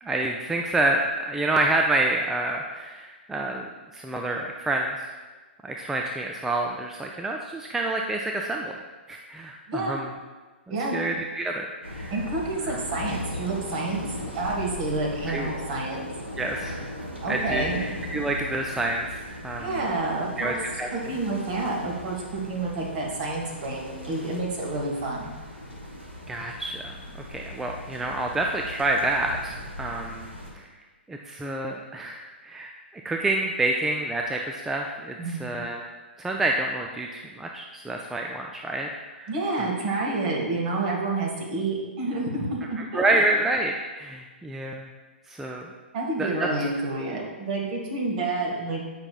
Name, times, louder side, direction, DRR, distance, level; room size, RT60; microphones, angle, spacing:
voice 1, 0.0-5.0 5.6-8.8 9.1-10.1 10.7-12.1 12.7-12.8 15.3-15.5 16.4-16.9 17.3-19.9 20.4-20.9 26.3-26.8 27.3-30.3 30.5-30.7 31.1-32.7 33.0-35.8 36.2-39.3 39.6-39.7 42.9-44.9 45.3-45.7 46.2-46.5, right 2 dB, 5° right, 1 dB, 0.3 m, -28 dB
voice 2, 9.7-10.0 10.7-11.0 12.1-14.0 14.3-16.0 17.2-17.8 19.6-20.5 20.9-25.3 35.2-35.4 39.3-43.2 45.9-48.8, right 2 dB, 40° right, -1 dB, 1.6 m, -29 dB
sound 1, 11.8-30.5, left 1 dB, 90° right, 1.4 m, -38 dB
8.6 x 5.5 x 2.4 m, 1.3 s
figure-of-eight pair, 115°, 6 cm